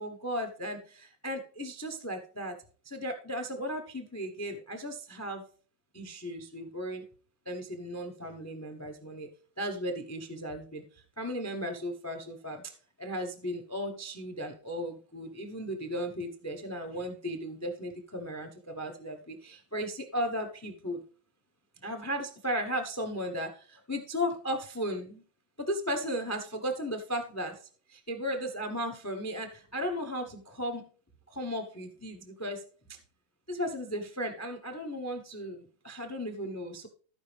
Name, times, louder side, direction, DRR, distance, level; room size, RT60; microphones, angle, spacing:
voice 1, 0.0-2.6 2.8-5.4 5.9-7.0 7.5-9.3 9.6-12.6 13.0-21.0 21.8-25.2 25.6-27.5 28.1-30.8 31.3-32.6 33.5-36.9, equal, 25° left, 5 dB, 0.3 m, -35 dB
14.0 x 5.1 x 3.4 m, 0.42 s
omnidirectional pair, 2.2 m